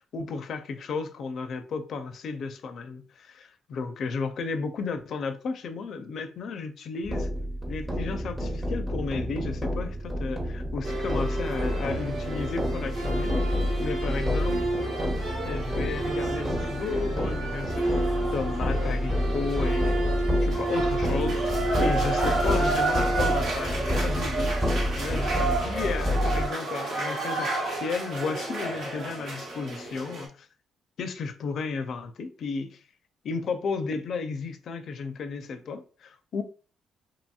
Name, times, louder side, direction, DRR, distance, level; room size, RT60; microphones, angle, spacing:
voice 1, 0.1-7.3 7.7-14.7 15.4-30.5 31.0-32.8 33.2-36.4, left 4 dB, 65° left, 0.4 m, -33 dB
sound 1, 7.0-26.5, equal, 15° right, 0.8 m, -29 dB
sound 2, 10.8-30.3, right 2 dB, 70° right, 1.2 m, -30 dB
2.9 x 2.7 x 2.3 m
cardioid pair, 90°, 0 cm